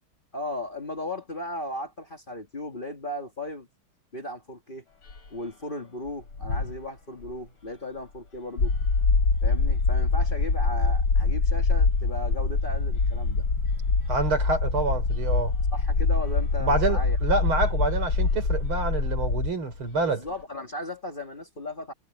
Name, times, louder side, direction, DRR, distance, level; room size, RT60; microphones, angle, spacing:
voice 1, 0.3-3.7 4.1-4.8 5.3-8.7 9.4-13.5 15.7-17.2 20.1-21.9, left 1 dB, 25° left, 1.9 m, -36 dB
sound 1, 4.9-20.5, left 3 dB, 85° left, 5.2 m, -44 dB
sound 2, 8.6-19.5, left 3 dB, 60° left, 3.0 m, -24 dB
voice 2, 14.1-15.5 16.6-20.3, right 3 dB, 80° right, 4.8 m, -27 dB
omnidirectional pair, 2.3 m